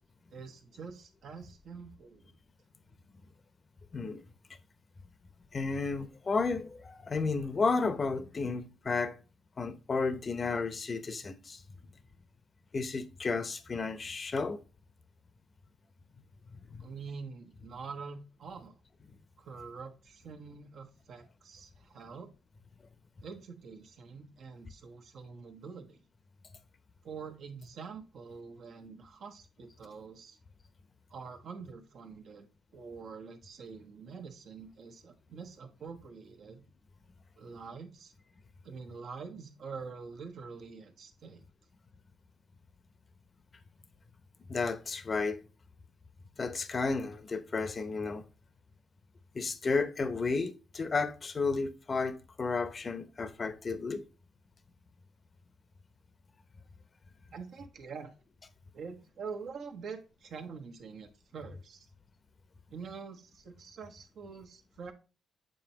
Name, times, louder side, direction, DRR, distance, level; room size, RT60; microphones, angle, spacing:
voice 1, 0.3-2.3 16.8-18.8 19.4-22.3 23.2-26.0 27.0-30.4 31.1-32.5 32.7-36.6 37.4-38.1 38.6-41.4 57.3-58.1 58.7-61.9 62.7-64.9, right 5 dB, 65° right, 1.3 m, -45 dB
voice 2, 3.9-4.2 5.5-9.2 9.6-11.6 12.7-14.6 16.7-16.9 44.5-45.4 46.4-48.2 49.3-54.0, left 4 dB, 35° left, 0.8 m, -32 dB
7.8 x 4.5 x 2.9 m
cardioid pair, 90°, 0 cm